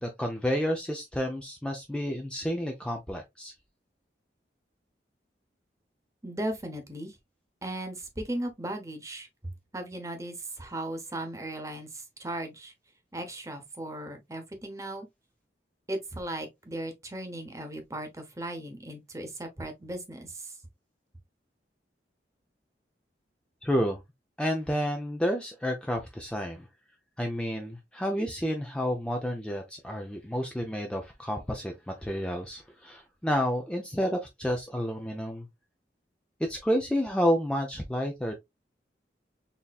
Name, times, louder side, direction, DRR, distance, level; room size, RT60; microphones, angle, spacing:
voice 1, 0.0-3.5 23.6-24.0 24.4-26.7 27.2-35.5 36.4-38.3, equal, 5° left, 0.5 m, -30 dB
voice 2, 6.2-7.1 7.6-9.3 9.7-11.9 12.2-12.7 13.1-15.1 15.9-20.5, right 1 dB, 20° right, 0.9 m, -37 dB
4.1 x 3.6 x 2.3 m
head